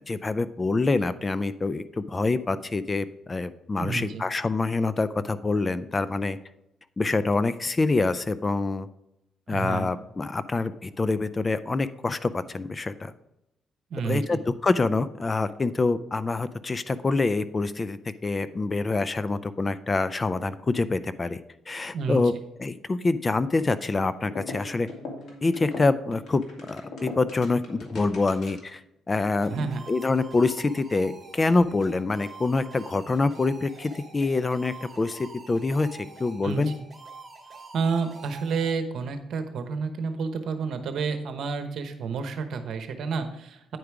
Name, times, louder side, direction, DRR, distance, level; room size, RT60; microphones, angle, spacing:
voice 1, 0.0-6.4 7.0-8.9 9.5-13.1 14.0-21.4 21.7-22.3 22.6-24.9 25.4-28.8 29.1-36.7, left 3 dB, 25° left, 14 dB, 0.4 m, -26 dB
voice 2, 3.8-4.3 9.5-9.9 13.9-14.4 21.9-22.2 29.5-29.8 36.4-36.7 37.7-43.6, right 5 dB, 70° right, 8 dB, 1.0 m, -30 dB
sound 1, 24.2-28.8, left 2 dB, 55° left, 2.1 m, -40 dB
sound 2, 29.1-38.7, right 4 dB, 20° right, 2.5 m, -46 dB
9.4 x 4.9 x 4.7 m, 0.86 s
cardioid pair, 90°, 0 cm